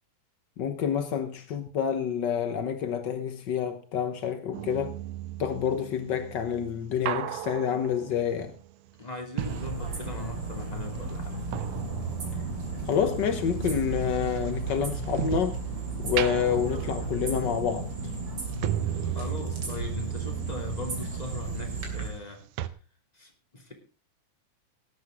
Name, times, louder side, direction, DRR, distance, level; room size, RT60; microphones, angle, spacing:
voice 1, 0.6-5.0 5.4-8.5 12.8-15.6 16.0-17.9, left 8 dB, 85° left, 0.9 m, -28 dB
sound 1, 4.5-10.5 10.8-15.6 16.0-22.3 22.6-22.7, right 13 dB, 80° right, 2.2 m, -36 dB
voice 2, 9.0-11.4 19.0-22.5 23.1-23.7, left 2 dB, 15° left, 2.7 m, -40 dB
sound 2, 9.4-22.1, right 3 dB, 40° right, 3.4 m, -34 dB
17.5 x 9.3 x 3.8 m
omnidirectional pair, 3.5 m